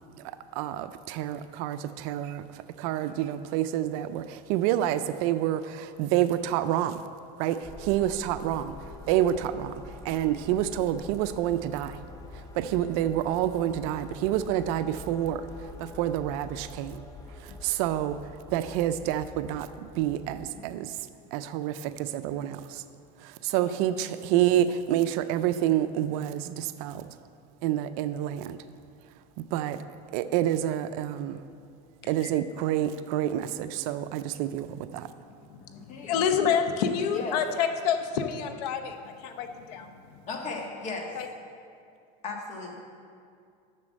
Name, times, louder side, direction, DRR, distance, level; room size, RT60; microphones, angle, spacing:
voice 1, 0.6-2.4 2.8-7.0 7.4-8.7 9.1-9.7 10.0-11.9 12.6-15.4 15.8-17.0 17.6-18.2 18.5-19.7 20.0-20.9 21.3-22.8 23.4-27.0 27.6-28.6 29.5-29.8 30.1-31.4 32.1-35.1, right 12 dB, 60° right, 12 dB, 0.5 m, -28 dB
sound 1, 7.6-20.5, left 2 dB, 15° left, 0.6 m, -46 dB
voice 2, 7.8-8.2 12.8-12.9 24.2-24.3 35.7-36.5 36.8-37.4 40.3-41.1 42.2-42.8, left 3 dB, 35° left, 2 dB, 1.4 m, -38 dB
voice 3, 35.5-40.2 41.1-41.3, left 7 dB, 75° left, 7 dB, 0.8 m, -29 dB
7.5 x 7.0 x 6.3 m, 2.3 s
supercardioid pair, 130°, 21 cm